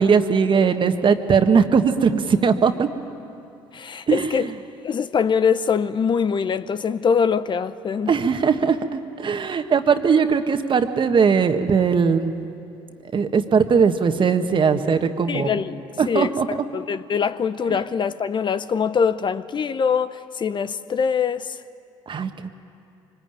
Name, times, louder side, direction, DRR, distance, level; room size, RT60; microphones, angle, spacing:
voice 1, 0.0-2.9 4.1-4.5 8.1-12.4 13.1-15.5 16.0-16.5 17.7-17.8 22.1-22.5, right 6 dB, 40° right, 1.5 m, -19 dB
voice 2, 3.7-4.5 4.8-8.1 15.3-21.6, left 6 dB, 40° left, 0.7 m, -23 dB
24.0 x 20.0 x 9.1 m
hypercardioid pair, 65°, 12 cm